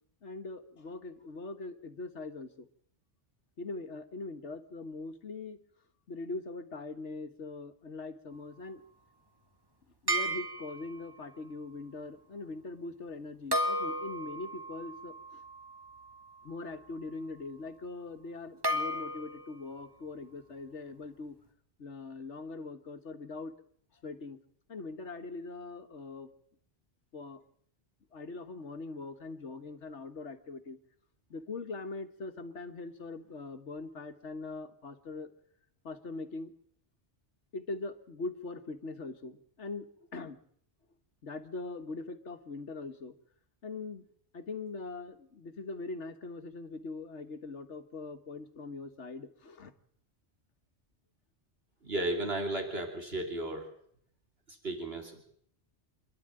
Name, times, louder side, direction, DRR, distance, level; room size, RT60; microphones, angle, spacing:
voice 1, 0.2-2.7 3.6-5.6 6.1-8.8 10.0-15.4 16.4-21.4 21.8-23.5 24.0-24.4 24.7-26.3 27.1-27.4 28.1-30.8 31.3-35.3 35.8-36.5 37.5-40.4 41.2-43.1 43.6-44.1 44.3-49.7, left 3 dB, 80° left, 8 dB, 1.8 m, -42 dB
sound 1, 10.1-11.1 13.5-16.6 18.6-19.6, equal, 20° right, 2.2 m, -34 dB
voice 2, 51.8-53.7 54.5-55.2, right 1 dB, 60° right, 3 dB, 3.3 m, -34 dB
26.5 x 11.5 x 8.9 m, 0.66 s
omnidirectional pair, 1.2 m